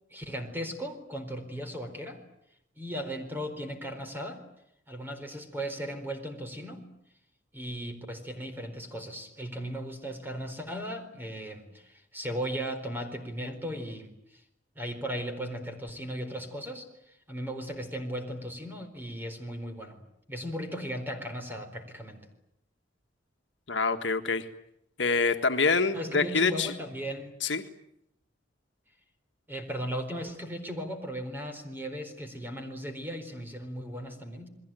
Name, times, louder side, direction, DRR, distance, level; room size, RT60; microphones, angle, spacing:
voice 1, 0.1-2.2 2.8-4.4 4.9-6.8 7.5-14.4 14.7-20.0 20.3-22.2 25.9-27.4 29.5-34.5, equal, 10° right, 6 dB, 4.3 m, -37 dB
voice 2, 23.7-24.5 25.0-26.7 27.4-27.6, left 4 dB, 65° left, 6 dB, 1.7 m, -26 dB
29.5 x 21.5 x 9.2 m, 0.80 s
head